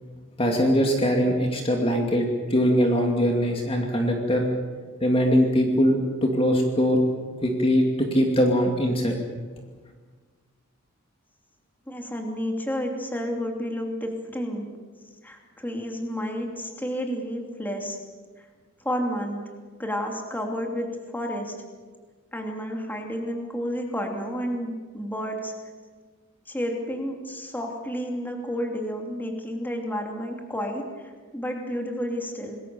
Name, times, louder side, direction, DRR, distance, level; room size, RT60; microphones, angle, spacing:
voice 1, 0.4-4.5 5.0-7.0 7.4-9.2, equal, 30° left, 2 dB, 2.4 m, -22 dB
voice 2, 11.9-14.6 15.2-18.0 18.8-19.4 19.8-21.6 22.3-25.5 26.5-32.6, equal, 10° left, 2 dB, 2.9 m, -31 dB
27.0 x 20.5 x 7.0 m, 1.5 s
head